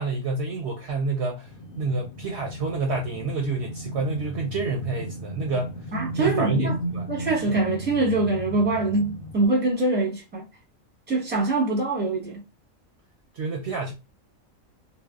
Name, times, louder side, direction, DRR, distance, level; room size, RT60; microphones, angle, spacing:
voice 1, 0.0-5.8 6.2-7.1 7.5-7.6 13.3-13.9, right 3 dB, 65° right, 0.7 m, -28 dB
sound 1, 1.4-9.5, right 1 dB, 85° left, 1.0 m, -35 dB
voice 2, 5.9-6.7 7.1-10.4 11.1-12.4, right 2 dB, 10° right, 0.8 m, -24 dB
2.6 x 2.1 x 2.2 m
omnidirectional pair, 1.4 m